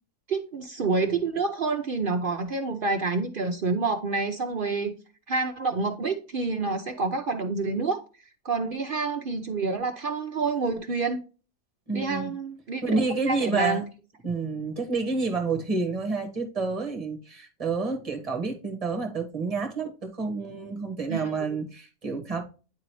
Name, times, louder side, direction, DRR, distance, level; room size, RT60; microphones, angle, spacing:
voice 1, 0.3-4.9 5.3-8.0 8.4-11.2 11.9-13.0 13.2-13.8 21.1-21.3, right 3 dB, 55° right, 0.6 m, -28 dB
voice 2, 11.9-12.3 12.8-13.8 14.2-22.4, right 4 dB, 25° right, 1.3 m, -29 dB
9.6 x 3.9 x 3.1 m
omnidirectional pair, 1.6 m